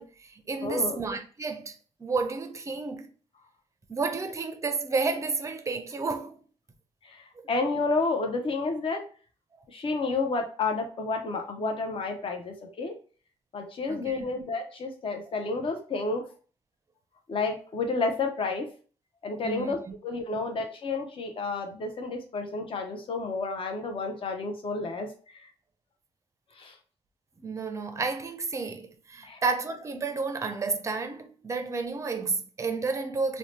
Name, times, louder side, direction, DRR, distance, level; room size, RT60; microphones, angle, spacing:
voice 1, 0.0-3.1 3.9-6.4 7.4-7.5 13.9-14.3 19.4-19.8 20.3-20.6 27.4-33.4, right 4 dB, 25° right, 0.5 m, -31 dB
voice 2, 0.6-1.0 7.0-9.0 9.7-13.0 13.5-16.2 17.3-18.7 19.2-25.5 26.6-26.7 29.2-29.4, left 3 dB, 45° left, 0.6 m, -30 dB
2.7 x 2.1 x 3.1 m
cardioid pair, 85°, 13 cm